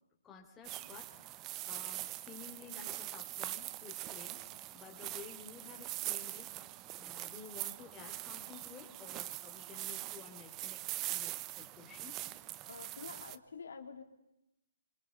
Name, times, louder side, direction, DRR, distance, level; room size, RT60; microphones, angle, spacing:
voice 1, 0.2-6.5 7.0-12.2, left 6 dB, 15° left, 1 dB, 4.2 m, -53 dB
sound 1, 0.6-13.4, right 16 dB, 25° right, 0.9 m, -43 dB
voice 2, 12.7-14.0, left 5 dB, 65° left, 7 dB, 3.6 m, -48 dB
27.0 x 26.5 x 5.5 m, 0.88 s
figure-of-eight pair, 135°, 0 cm